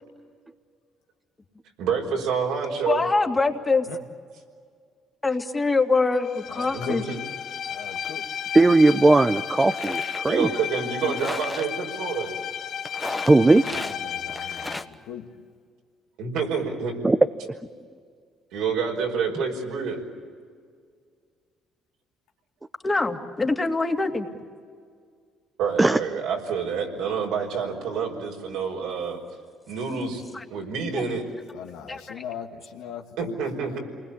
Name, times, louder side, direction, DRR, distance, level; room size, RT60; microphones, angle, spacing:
voice 1, 1.8-3.0 6.7-7.1 10.3-12.3 16.2-16.9 18.5-20.0 25.6-29.2 29.7-30.2 30.5-31.2 33.2-33.8, right 6 dB, 80° right, 1 dB, 5.2 m, -28 dB
voice 2, 2.9-3.9 5.2-7.0 22.8-24.3 30.3-30.4 30.9-31.0 31.9-32.2, left 3 dB, 25° left, 3 dB, 2.7 m, -24 dB
Bowed string instrument, 6.2-14.9, left 8 dB, 60° left, 1.0 m, -33 dB
voice 3, 6.5-7.1 7.7-8.3 13.0-15.3 31.5-33.4 33.7-33.8, left 8 dB, 80° left, 3 dB, 2.2 m, -39 dB
voice 4, 8.5-10.5 13.2-13.6 17.0-17.2 25.8-26.0, right 2 dB, 20° right, 8 dB, 0.9 m, -17 dB
sound 1, 8.9-9.0 9.6-10.3 11.0-11.7 12.9-14.0 14.3-14.9, left 1 dB, 10° left, 1.4 m, -35 dB
28.5 x 20.5 x 8.6 m, 2.1 s
supercardioid pair, 65°, 0 cm